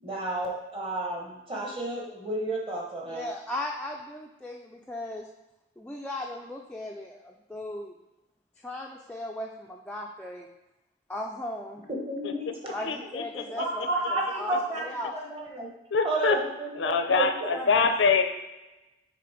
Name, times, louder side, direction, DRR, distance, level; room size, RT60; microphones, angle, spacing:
voice 1, 0.0-3.3 11.9-12.8 13.6-15.7 16.0-17.3, right 2 dB, 30° right, -1 dB, 1.1 m, -31 dB
voice 2, 3.1-5.3 5.8-7.9 8.6-10.5 11.1-11.9 12.7-15.1 17.5-17.7, left 1 dB, 5° left, -1 dB, 0.3 m, -37 dB
voice 3, 12.8-13.9 14.5-14.6 15.9-16.4 16.8-18.2, left 5 dB, 80° left, 7 dB, 0.5 m, -25 dB
5.9 x 3.7 x 4.9 m, 1.0 s
head